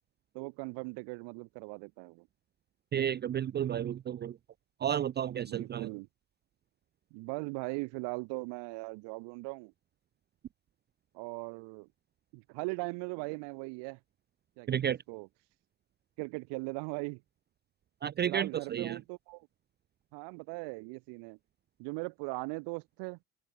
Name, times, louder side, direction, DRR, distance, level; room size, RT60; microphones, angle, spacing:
voice 1, 0.3-2.3 5.3-6.1 7.1-9.7 11.1-11.9 12.3-14.0 14.6-15.3 16.2-17.2 18.2-19.5 20.1-21.4 21.8-23.2, right 30 dB, 85° right, 2.1 m, -39 dB
voice 2, 2.9-4.3 4.8-5.9 14.7-15.0 18.0-19.0, right 9 dB, 25° right, 0.5 m, -32 dB
cardioid pair, 140°, 41 cm